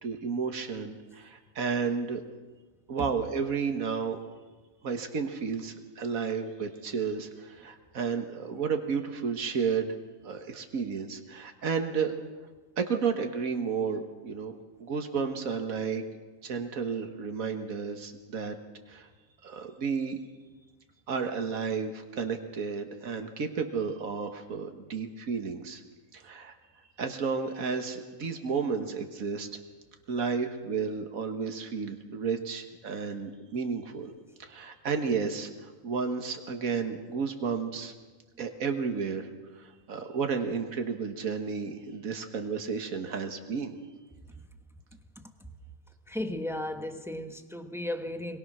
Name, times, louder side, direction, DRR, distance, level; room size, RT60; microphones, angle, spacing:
voice 1, 0.0-2.2 2.9-4.2 4.8-9.9 10.2-12.2 12.8-14.5 14.8-16.0 16.4-18.6 18.9-19.1 19.4-20.2 21.1-25.8 26.1-26.5 27.0-29.5 30.1-34.1 34.4-37.9 38.4-39.3 39.6-43.8, right 5 dB, 85° right, 5 dB, 1.9 m, -32 dB
voice 2, 45.2-45.5 46.1-48.4, left 1 dB, ahead, 7 dB, 1.1 m, -35 dB
24.0 x 22.0 x 6.2 m, 1.3 s
omnidirectional pair, 1.4 m